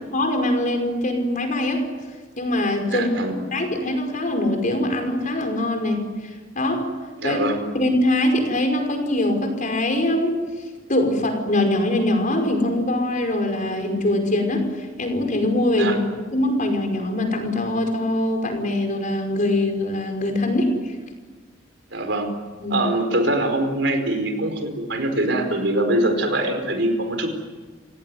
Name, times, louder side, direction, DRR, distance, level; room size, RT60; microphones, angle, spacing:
voice 1, 0.1-1.9 2.4-3.1 3.5-6.9 7.2-7.4 7.7-10.4 10.9-15.9 16.3-20.9 22.6-22.8, left 1 dB, 45° left, 5 dB, 5.4 m, -23 dB
voice 2, 2.9-3.4 7.2-7.6 15.7-16.0 21.9-22.3 22.7-27.3, right 1 dB, 70° right, 6 dB, 4.8 m, -23 dB
30.0 x 17.5 x 9.5 m, 1.4 s
head